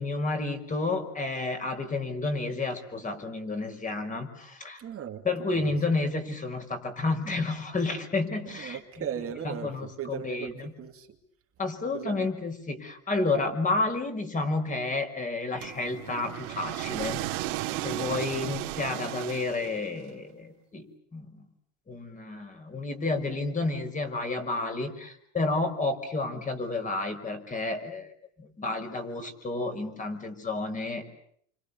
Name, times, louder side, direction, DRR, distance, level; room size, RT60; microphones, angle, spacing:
voice 1, 0.0-4.8 5.2-9.1 9.4-10.7 11.6-17.2 17.8-20.9 21.1-21.5 21.9-31.0, left 3 dB, 20° left, 6 dB, 5.7 m, -31 dB
voice 2, 4.8-5.2 5.5-5.7 8.5-11.1 11.9-12.3 17.9-18.3, right 9 dB, 35° right, 4 dB, 2.6 m, -38 dB
sound 1, 15.6-20.0, right 15 dB, 70° right, 3.0 m, -34 dB
29.0 x 26.0 x 7.1 m, 0.66 s
supercardioid pair, 125°, 38 cm